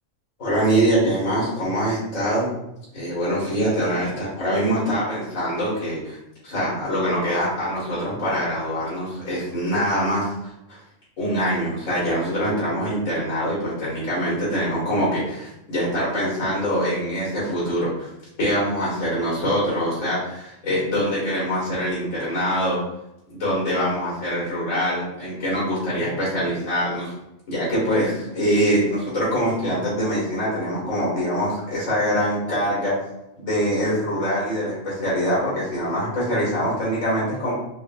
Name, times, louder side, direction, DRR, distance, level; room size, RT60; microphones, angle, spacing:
voice 1, 0.4-2.5 2.9-6.2 6.4-10.8 11.2-18.1 18.4-22.8 23.3-27.1 27.5-33.0 33.4-37.5, equal, 75° left, -7 dB, 2.0 m, -24 dB
4.7 x 3.1 x 2.4 m, 0.86 s
omnidirectional pair, 1.4 m